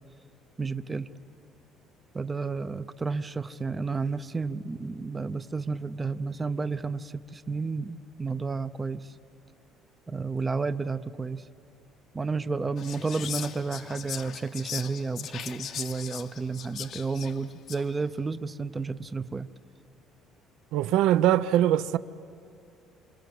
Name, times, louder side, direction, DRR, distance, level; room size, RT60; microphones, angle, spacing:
voice 1, 0.6-1.1 2.1-9.0 10.1-11.4 12.1-19.5, right 4 dB, 15° right, 0.6 m, -31 dB
Whispering, 12.8-17.9, left 9 dB, 50° left, 0.8 m, -39 dB
voice 2, 20.7-22.0, right 12 dB, 75° right, 0.7 m, -22 dB
27.5 x 26.5 x 7.8 m
cardioid pair, 150°, 0 cm